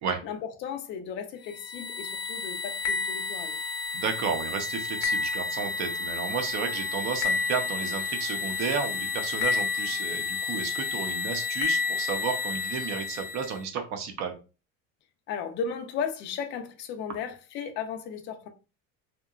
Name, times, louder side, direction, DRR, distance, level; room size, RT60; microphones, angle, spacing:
voice 1, 0.2-3.6 15.3-18.5, left 6 dB, 35° left, 0.4 m, -35 dB
sound 1, 1.4-13.6, left 4 dB, 85° left, 0.7 m, -31 dB
voice 2, 3.9-14.3, right 6 dB, 50° right, 0.7 m, -32 dB
2.8 x 2.2 x 2.3 m
cardioid pair, 145°, 35 cm